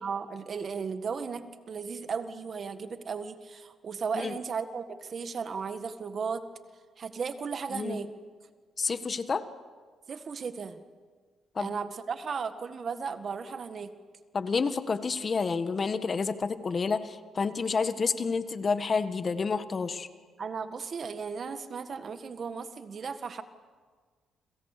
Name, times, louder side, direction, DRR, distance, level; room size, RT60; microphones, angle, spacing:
voice 1, 0.0-6.5 7.0-8.1 10.1-10.8 11.6-13.9 20.4-23.4, right 5 dB, 50° right, 9 dB, 1.7 m, -35 dB
voice 2, 8.8-9.4 11.5-11.8 14.3-20.1, left 4 dB, 40° left, 10 dB, 1.5 m, -29 dB
29.0 x 26.5 x 6.8 m, 1.5 s
cardioid pair, 90°, 0 cm